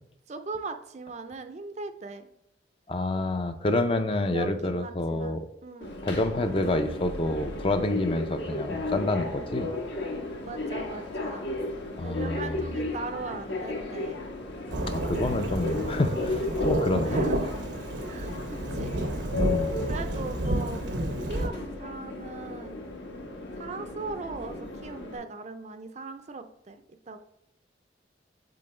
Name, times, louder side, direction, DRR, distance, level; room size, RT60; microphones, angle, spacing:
voice 1, 0.3-2.3 4.3-5.9 10.4-11.5 12.0-14.2 17.0-17.5 18.1-18.9 19.9-20.8 21.3-22.8 23.6-26.8 27.1-27.2, right 3 dB, 40° right, 8 dB, 0.4 m, -39 dB
voice 2, 2.9-5.4 6.0-9.7 12.0-12.7 14.9-17.2 19.4-19.9, left 2 dB, 30° left, 8 dB, 0.4 m, -28 dB
Subway metro underground, 5.8-25.2, left 2 dB, 70° left, 1.1 m, -34 dB
Thunderstorm / Rain, 14.7-21.5, right 1 dB, 75° right, 0.8 m, -31 dB
7.7 x 3.8 x 3.2 m, 0.79 s
head